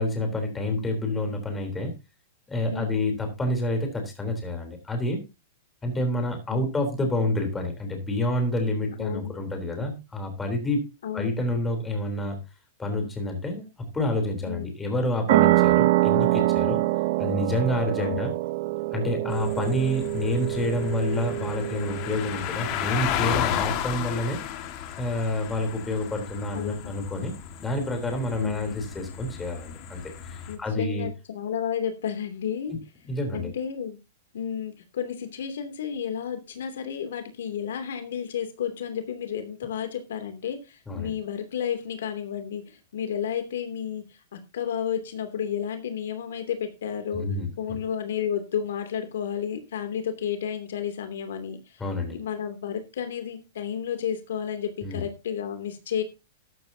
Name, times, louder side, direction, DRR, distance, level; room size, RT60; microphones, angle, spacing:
voice 1, 0.0-1.9 2.5-5.2 5.8-10.8 11.1-12.4 12.8-16.8 17.2-18.3 18.9-24.4 25.0-27.3 27.6-30.0 30.3-31.1 32.7-32.8 33.1-33.5 40.9-41.1 47.1-47.8 51.8-52.2 54.8-55.1, left 1 dB, 10° left, 4 dB, 3.6 m, -28 dB
voice 2, 9.0-9.3 11.0-11.3 14.4-14.6 18.0-18.3 26.5-26.9 28.4-28.7 30.5-32.7 33.3-34.0 34.3-44.0 44.3-47.3 47.6-51.6 52.1-56.0, left 8 dB, 85° left, 7 dB, 2.7 m, -32 dB
sound 1, 15.3-22.5, right 17 dB, 50° right, 0.6 m, -24 dB
sound 2, 19.3-30.6, left 10 dB, 35° left, 1.8 m, -33 dB
13.5 x 12.0 x 2.8 m, 0.27 s
supercardioid pair, 160°, 0 cm